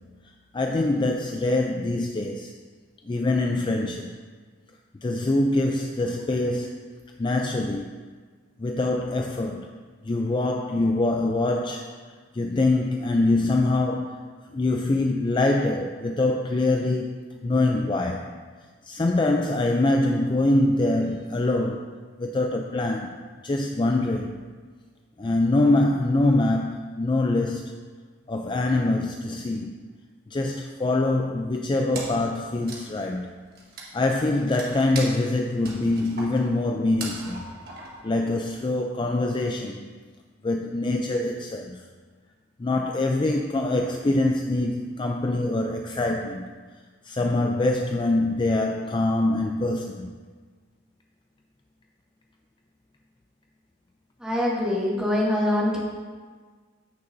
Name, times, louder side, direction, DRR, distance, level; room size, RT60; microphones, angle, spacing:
voice 1, 0.5-2.5 3.1-4.2 5.0-6.9 7.2-7.9 8.6-9.7 10.0-12.0 12.3-18.3 18.8-21.9 22.2-23.1 23.4-24.4 25.2-27.7 28.3-29.8 30.3-33.3 33.9-37.5 38.0-39.9 40.4-41.9 42.6-46.5 47.0-50.1, left 2 dB, 25° left, 3 dB, 0.4 m, -24 dB
Wood, 31.9-38.7, right 2 dB, 50° right, 1.6 m, -40 dB
voice 2, 54.2-55.8, left 1 dB, 5° right, -6 dB, 2.1 m, -24 dB
15.0 x 6.6 x 2.7 m, 1.5 s
head